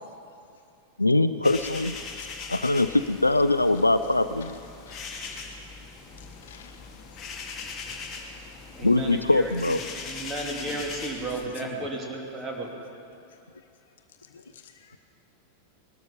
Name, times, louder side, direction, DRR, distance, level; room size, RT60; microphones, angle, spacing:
voice 1, 1.0-2.0 2.5-4.5 8.8-9.8, left 2 dB, 85° left, 12 dB, 0.4 m, -22 dB
sound 1, 1.4-11.5, left 4 dB, 25° left, 2.0 m, -40 dB
voice 2, 4.9-5.5 6.4-6.8 10.6-10.8 11.6-11.8 14.3-15.0, left 7 dB, 60° left, 5 dB, 1.3 m, -47 dB
voice 3, 8.7-9.8 10.0-12.7, right 2 dB, 15° right, -1 dB, 2.7 m, -34 dB
20.5 x 13.0 x 5.4 m, 2.6 s
figure-of-eight pair, 90°, 0 cm